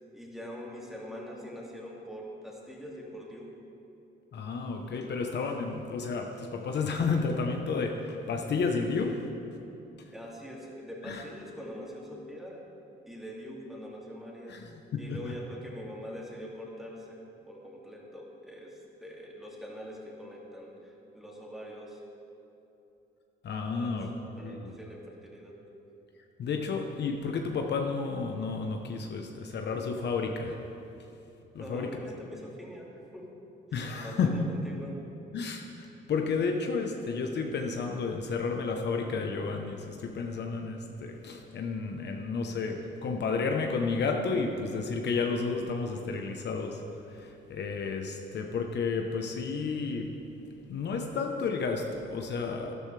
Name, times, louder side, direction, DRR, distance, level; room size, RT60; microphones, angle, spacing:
voice 1, 0.1-3.5 10.1-12.6 13.1-14.6 15.0-22.0 23.7-25.6 31.6-33.3 33.7-35.0, equal, ahead, -3 dB, 2.4 m, -43 dB
voice 2, 4.3-9.2 10.0-10.1 11.0-11.2 14.5-15.3 23.4-24.1 24.4-24.8 26.4-30.6 31.5-31.9 33.7-34.4 35.3-35.6 36.1-46.8 47.1-50.1 50.7-52.7, left 4 dB, 60° left, 3 dB, 0.9 m, -31 dB
12.5 x 11.5 x 3.3 m, 2.9 s
cardioid pair, 90°, 20 cm